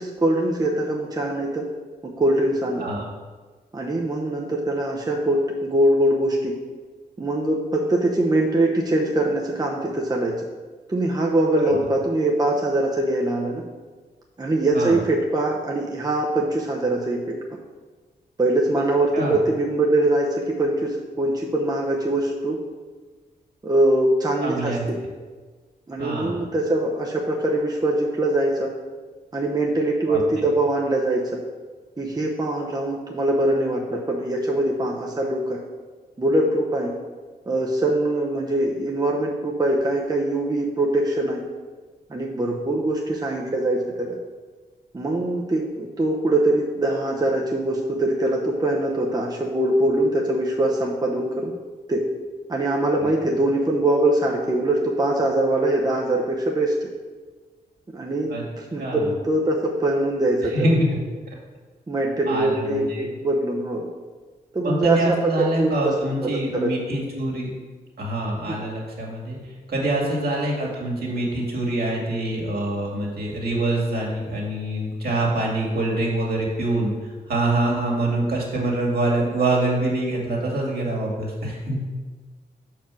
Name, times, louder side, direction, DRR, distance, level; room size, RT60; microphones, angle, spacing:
voice 1, 0.0-1.6 2.2-2.8 3.7-6.5 7.2-10.5 10.9-13.6 14.4-17.4 18.4-22.6 23.6-25.0 25.9-28.7 29.3-31.3 32.0-35.6 36.2-36.9 37.5-41.4 42.1-44.2 44.9-51.5 51.9-52.0 52.5-56.8 57.9-58.3 58.6-60.7 61.9-63.9 64.5-66.0 66.2-66.7 68.5-68.6 70.0-70.3, right 1 dB, 25° right, -1 dB, 0.8 m, -23 dB
voice 2, 24.4-24.8 26.0-26.4 30.1-30.2 53.0-53.1 58.3-58.4 58.8-59.0 60.5-61.0 62.3-63.1 64.6-67.5 68.0-69.4 69.7-81.8, right 1 dB, 65° right, -3 dB, 2.1 m, -25 dB
5.5 x 4.6 x 6.2 m, 1.4 s
cardioid pair, 75°, 17 cm